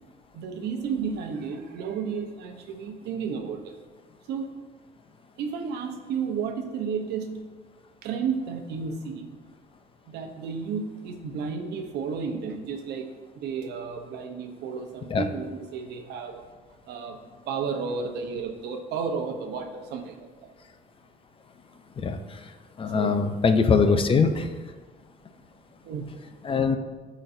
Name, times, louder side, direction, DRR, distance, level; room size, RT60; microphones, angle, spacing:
voice 1, 0.3-3.8 4.3-4.6 5.4-7.4 8.0-9.3 10.1-13.1 13.4-16.4 16.9-17.2 17.5-20.5 22.9-23.3 23.7-24.0 25.8-26.1, right 6 dB, 80° right, 5 dB, 0.8 m, -32 dB
voice 2, 22.8-24.5 26.4-26.8, left 5 dB, 30° left, 8 dB, 0.5 m, -22 dB
12.0 x 4.1 x 2.6 m, 1.4 s
cardioid pair, 110°, 17 cm